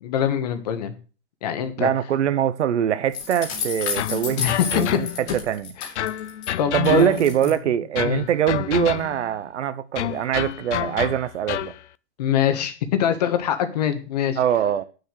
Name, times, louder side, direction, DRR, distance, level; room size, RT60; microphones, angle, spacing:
voice 1, 0.0-0.9 1.4-1.9 4.4-4.7 5.8-5.9 6.6-7.2 8.0-8.2 12.2-14.4, left 9 dB, 35° left, 1.5 m, -24 dB
voice 2, 1.8-5.1 5.5-5.7 6.7-11.7 14.4-14.8, right 9 dB, 90° right, 1.0 m, -23 dB
sound 1, 3.1-6.5 6.8-7.5, left 6 dB, 20° left, 2.1 m, -31 dB
sound 2, 4.0-5.4 6.0-7.4 8.0-9.3 10.0-11.8, left 12 dB, 90° left, 0.6 m, -28 dB
9.7 x 6.5 x 6.5 m
hypercardioid pair, 180°, 34 cm